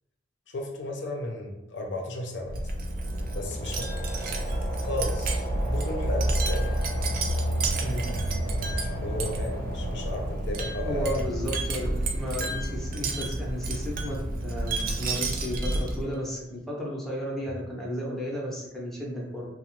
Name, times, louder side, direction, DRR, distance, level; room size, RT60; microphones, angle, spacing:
voice 1, 0.5-2.7 3.3-4.0 4.8-6.7 8.4-11.3 17.5-17.6, left 1 dB, 70° left, 2 dB, 0.5 m, -34 dB
Wind chime, 2.4-16.2, right 1 dB, 50° right, 0.3 m, -29 dB
sound 1, 2.6-10.7, right 1 dB, 85° right, 0.9 m, -40 dB
voice 2, 7.8-8.1 10.8-19.5, equal, ahead, -4 dB, 0.5 m, -33 dB
2.8 x 2.0 x 3.0 m, 0.91 s
head